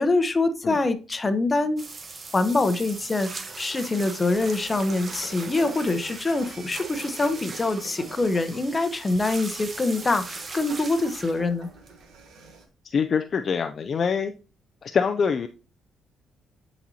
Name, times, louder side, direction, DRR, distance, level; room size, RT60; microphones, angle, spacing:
voice 1, 0.0-1.8 2.3-11.7, left 2 dB, 25° left, 10 dB, 0.9 m, -24 dB
sound 1, 1.8-12.2, right 4 dB, 35° right, 0.8 m, -39 dB
sound 2, 4.3-12.6, right 4 dB, 80° right, 1.5 m, -47 dB
voice 2, 12.8-14.3 14.8-15.5, left 6 dB, 50° left, 7 dB, 0.4 m, -24 dB
9.9 x 4.2 x 2.8 m, 0.35 s
cardioid pair, 90°, 0 cm